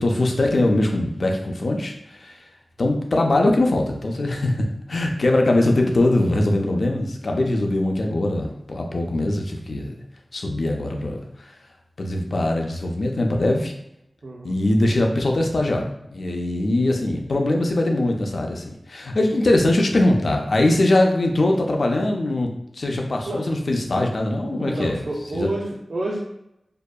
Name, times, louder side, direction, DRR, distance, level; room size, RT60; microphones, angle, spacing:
voice 1, 0.0-2.4 2.8-9.9 10.3-11.2 12.0-13.7 14.4-25.0 25.3-25.5, left 1 dB, 65° left, 2 dB, 0.4 m, -21 dB
voice 2, 14.2-14.5 23.3-23.4 24.5-26.2, right 1 dB, 70° right, -4 dB, 0.4 m, -29 dB
2.6 x 2.2 x 2.2 m, 0.82 s
wide cardioid pair, 80°, 0 cm